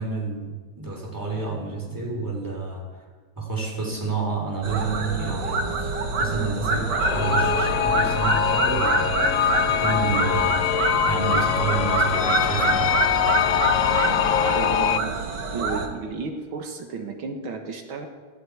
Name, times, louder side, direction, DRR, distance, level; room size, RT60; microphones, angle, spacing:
voice 1, 0.0-3.1 3.4-10.7 11.0-12.9, right 4 dB, 10° right, -1 dB, 3.4 m, -30 dB
sound 1, 4.6-15.9, right 3 dB, 55° right, 2.2 m, -26 dB
sound 2, 7.0-15.0, left 9 dB, 75° left, 0.7 m, -23 dB
voice 2, 14.5-15.2 15.5-18.1, right 4 dB, 75° right, 4 dB, 2.2 m, -33 dB
18.5 x 16.0 x 4.8 m, 1.5 s
omnidirectional pair, 2.3 m